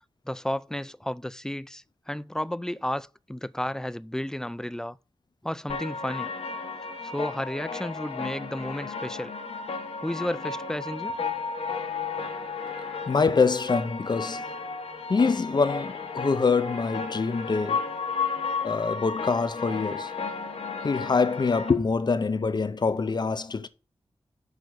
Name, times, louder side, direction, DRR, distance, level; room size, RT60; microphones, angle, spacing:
voice 1, 0.3-5.0 5.4-6.3 7.0-9.3 10.0-11.1, left 1 dB, 5° left, 0.3 m, -32 dB
sound 1, 5.7-21.7, left 5 dB, 75° left, 1.4 m, -33 dB
voice 2, 13.1-14.4 15.1-17.9 18.6-20.1 20.8-23.7, left 4 dB, 45° left, 0.6 m, -25 dB
6.4 x 4.8 x 6.4 m
wide cardioid pair, 70°, 10 cm